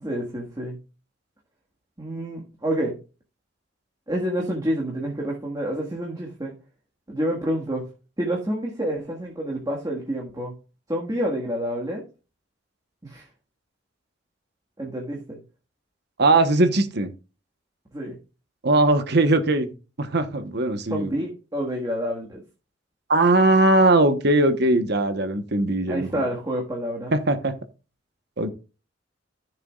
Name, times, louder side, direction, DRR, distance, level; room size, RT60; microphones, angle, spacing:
voice 1, 0.0-0.8 2.0-2.9 4.1-6.5 7.1-7.9 8.2-10.5 10.9-12.0 13.0-13.2 14.8-15.4 17.9-18.2 20.9-22.4 25.9-27.1, equal, 20° right, -2 dB, 1.7 m, -28 dB
voice 2, 16.2-17.1 18.6-19.7 20.0-21.1 23.1-26.2 27.1-27.6 28.4-28.5, right 2 dB, 60° right, 9 dB, 1.1 m, -20 dB
15.0 x 6.8 x 2.4 m, 0.33 s
head